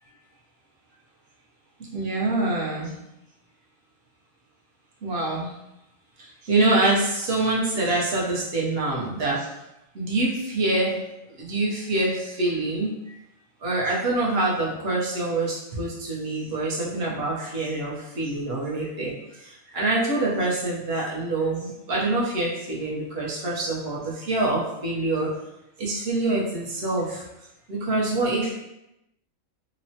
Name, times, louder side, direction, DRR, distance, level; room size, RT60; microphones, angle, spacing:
voice 1, 1.9-2.9 5.0-5.5 6.5-9.5 9.9-10.9 11.4-12.9 13.6-19.1 19.7-25.3 25.8-27.2 27.7-28.5, right 2 dB, 55° right, -4 dB, 0.8 m, -25 dB
3.0 x 2.0 x 2.7 m, 0.89 s
omnidirectional pair, 1.4 m